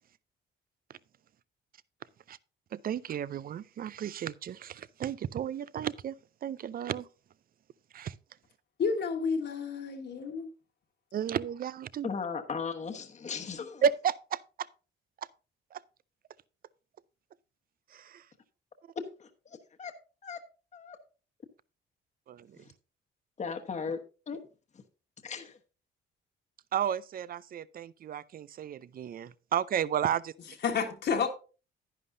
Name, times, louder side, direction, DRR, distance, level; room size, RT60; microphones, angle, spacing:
voice 1, 2.7-6.2 6.4-7.1 7.9-8.1 11.1-12.1 13.8-14.7 15.7-15.8 17.9-18.3 22.3-22.6 26.7-30.3, right 9 dB, 50° right, 0.5 m, -33 dB
voice 2, 8.8-10.5 30.6-31.3, left 5 dB, 60° left, 1.5 m, -30 dB
voice 3, 12.0-13.8 19.0-19.3 19.8-19.9 20.2-20.4 20.7-21.0 23.4-24.0 24.3-24.4 25.2-25.6, left 5 dB, 35° left, 1.1 m, -36 dB
10.5 x 9.7 x 2.7 m
cardioid pair, 90°, 20 cm